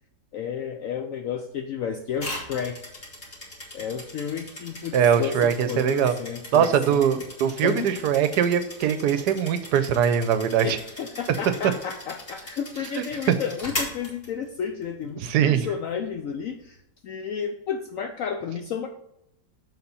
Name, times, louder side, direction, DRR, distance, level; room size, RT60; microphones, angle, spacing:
voice 1, 0.3-2.8 3.7-7.2 7.6-7.9 10.6-18.9, left 7 dB, 75° left, 6 dB, 0.7 m, -32 dB
sound 1, 2.2-14.8, left 1 dB, 35° left, 2.0 m, -39 dB
voice 2, 4.9-6.1 6.5-10.8 13.0-13.3 15.2-15.7, right 8 dB, 75° right, 11 dB, 1.1 m, -22 dB
6.9 x 4.1 x 5.5 m, 0.81 s
omnidirectional pair, 1.9 m